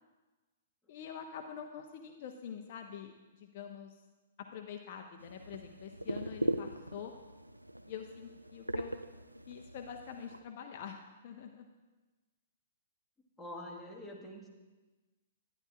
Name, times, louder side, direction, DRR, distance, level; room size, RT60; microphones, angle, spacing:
voice 1, 0.9-4.0 4.4-7.1 7.9-9.0 9.5-11.7, left 8 dB, 45° left, 4 dB, 0.5 m, -46 dB
sound 1, 5.2-10.4, right 1 dB, 85° right, 0.3 m, -40 dB
voice 2, 13.4-14.5, left 1 dB, ahead, -4 dB, 1.5 m, -45 dB
11.5 x 9.7 x 2.5 m, 1.2 s
figure-of-eight pair, 115°, 0 cm